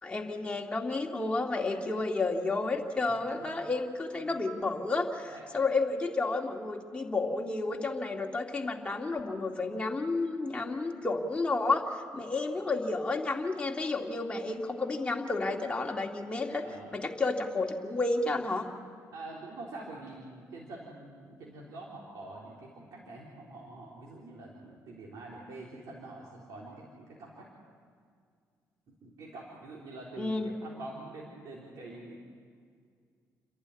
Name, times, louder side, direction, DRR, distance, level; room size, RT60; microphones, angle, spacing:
voice 1, 0.0-16.6 16.9-18.7 30.2-30.5, left 3 dB, 20° left, 0 dB, 2.4 m, -31 dB
voice 2, 16.6-17.0 19.1-27.5 28.9-32.2, right 2 dB, 70° right, -4 dB, 3.7 m, -45 dB
29.5 x 11.5 x 9.8 m, 2.1 s
cardioid pair, 100°, 6 cm